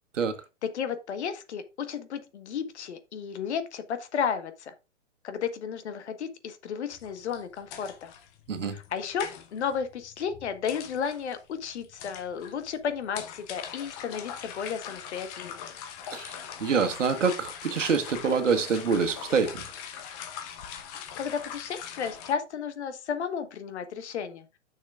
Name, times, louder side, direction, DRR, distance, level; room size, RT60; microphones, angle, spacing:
voice 1, 0.6-4.7 5.2-8.1 8.6-15.6 21.2-24.5, left 7 dB, 65° left, 1.5 m, -33 dB
sound 1, 6.9-22.3, left 8 dB, 30° left, 1.0 m, -42 dB
voice 2, 16.6-19.7, right 5 dB, 90° right, 1.4 m, -26 dB
10.5 x 6.4 x 2.4 m
hypercardioid pair, 140°, 36 cm